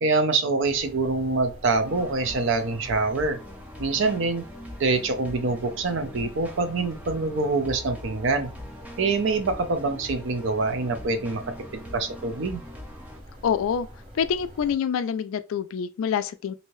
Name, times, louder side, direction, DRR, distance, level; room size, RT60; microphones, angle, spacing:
voice 1, 0.0-3.4 3.8-4.4 4.8-8.5 9.0-11.4 11.9-12.6, right 3 dB, 60° right, 0.5 m, -25 dB
sound 1, 0.5-14.8, equal, 40° right, 1.3 m, -46 dB
sound 2, 1.8-13.2, left 1 dB, 5° right, 0.5 m, -42 dB
voice 2, 13.4-13.9 14.1-16.5, left 7 dB, 75° left, 0.3 m, -26 dB
2.7 x 2.7 x 3.0 m
head